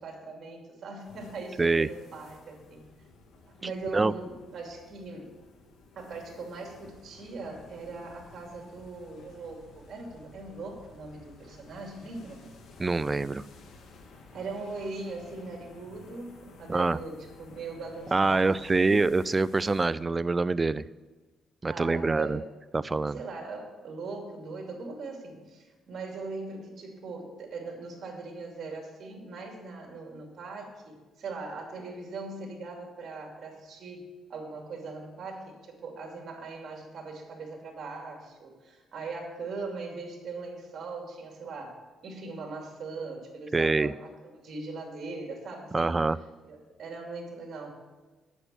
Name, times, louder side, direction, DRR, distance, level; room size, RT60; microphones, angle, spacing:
voice 1, 0.0-2.9 3.5-5.3 5.9-12.4 14.3-19.0 21.7-22.4 23.1-41.8 42.0-45.9 46.4-47.8, right 3 dB, 55° right, 1 dB, 2.7 m, -40 dB
sound 1, 1.0-19.9, left 3 dB, 75° left, 1.6 m, -53 dB
voice 2, 12.8-13.4 16.7-17.0 18.1-20.8 21.6-22.4 22.7-23.2 43.5-43.9 45.7-46.2, right 3 dB, 25° right, 18 dB, 0.3 m, -25 dB
8.5 x 7.1 x 7.0 m, 1.2 s
cardioid pair, 90°, 0 cm